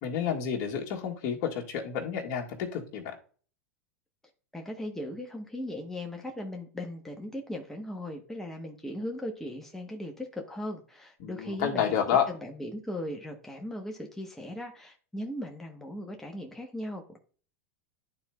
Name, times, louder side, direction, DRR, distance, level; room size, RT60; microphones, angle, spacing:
voice 1, 0.0-3.1 11.2-12.3, left 8 dB, 50° left, 1 dB, 1.7 m, -30 dB
voice 2, 4.5-17.2, left 1 dB, 5° left, 1 dB, 1.1 m, -38 dB
11.5 x 4.3 x 2.3 m, 0.42 s
hypercardioid pair, 100°, 8 cm